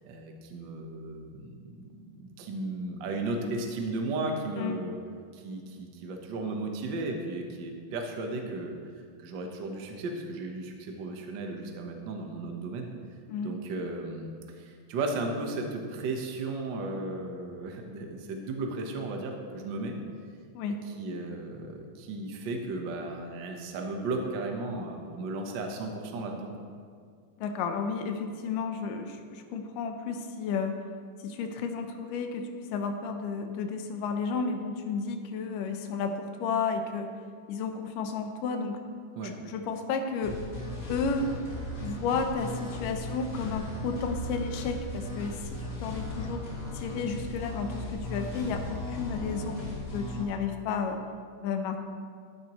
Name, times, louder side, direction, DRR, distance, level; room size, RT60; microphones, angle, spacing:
voice 1, 0.0-4.9 5.3-8.7 9.2-12.9 13.4-14.3 14.6-20.0 20.9-26.5 39.1-39.4, right 2 dB, 90° right, 2 dB, 1.0 m, -35 dB
voice 2, 4.6-4.9 13.3-13.5 20.5-20.8 27.4-30.8 31.2-37.1 37.5-38.8 39.5-40.4 40.9-41.3 41.8-46.5 46.7-51.0 51.4-51.8, left 5 dB, 85° left, 5 dB, 2.4 m, -32 dB
sound 1, 40.2-50.2, left 1 dB, 30° left, 2.2 m, -37 dB
13.5 x 10.0 x 3.0 m, 2.1 s
omnidirectional pair, 3.8 m